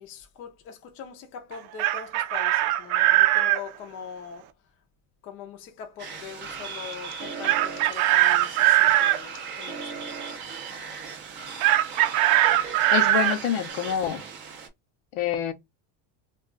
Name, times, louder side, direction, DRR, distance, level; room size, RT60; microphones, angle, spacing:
voice 1, 0.0-4.5 5.2-9.9, left 7 dB, 30° left, 0.4 m, -42 dB
Chicken rooster, 1.5-3.6 7.4-9.2 11.6-13.4, right 14 dB, 85° right, 0.6 m, -21 dB
sound 1, 6.0-14.7, right 5 dB, 25° right, 0.4 m, -37 dB
voice 2, 12.9-14.2 15.1-15.5, left 9 dB, 75° left, 0.7 m, -26 dB
2.3 x 2.3 x 3.6 m
cardioid pair, 180°, 44 cm